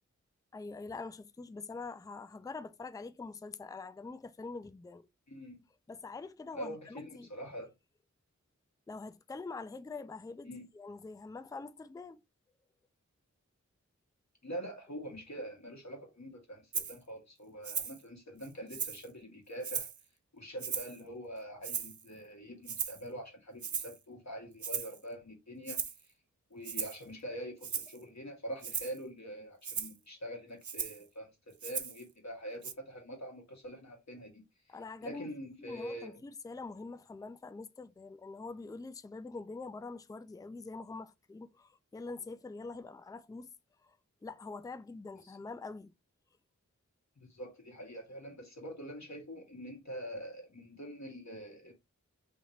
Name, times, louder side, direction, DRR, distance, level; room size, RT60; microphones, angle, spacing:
voice 1, 0.5-5.1 5.9-7.3 8.9-12.2 34.7-35.3 35.6-43.5 43.8-44.0 44.2-45.9, left 3 dB, 10° left, 0.3 m, -45 dB
voice 2, 5.3-5.6 6.5-7.7 10.4-10.6 14.4-19.9 20.3-26.1 26.5-36.2 45.2-45.3 47.2-51.7, equal, 65° left, 1.7 m, -45 dB
Rattle (instrument), 16.7-17.0 17.6-18.0 18.4-19.1 19.6-20.0 20.6-21.0 21.6-22.1 22.7-23.0 23.6-24.0 24.6-25.0 25.7-26.0 26.6-27.0 27.6-28.0 28.6-29.0 29.6-30.0 30.6-31.0 31.6-32.0 32.6-32.7, right 7 dB, 75° right, 0.5 m, -37 dB
3.5 x 2.9 x 4.0 m
wide cardioid pair, 55°, 30 cm